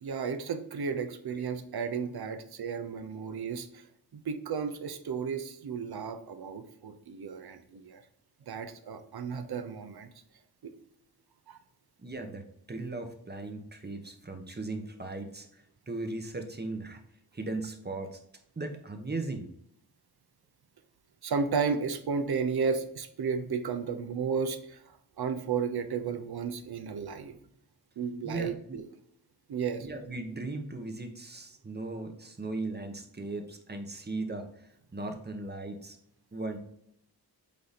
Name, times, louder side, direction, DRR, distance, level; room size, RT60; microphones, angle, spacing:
voice 1, 0.0-3.8 4.1-8.0 8.5-10.1 10.6-10.7 11.5-11.6 21.2-24.8 25.2-27.3 28.0-28.8 29.5-29.9, right 5 dB, 70° right, 9 dB, 0.8 m, -33 dB
voice 2, 12.0-17.0 17.3-18.2 18.6-19.5 28.2-28.8 29.8-36.0 36.3-36.6, right 2 dB, 25° right, 5 dB, 0.9 m, -38 dB
8.4 x 2.9 x 4.1 m, 0.71 s
wide cardioid pair, 105°, 39 cm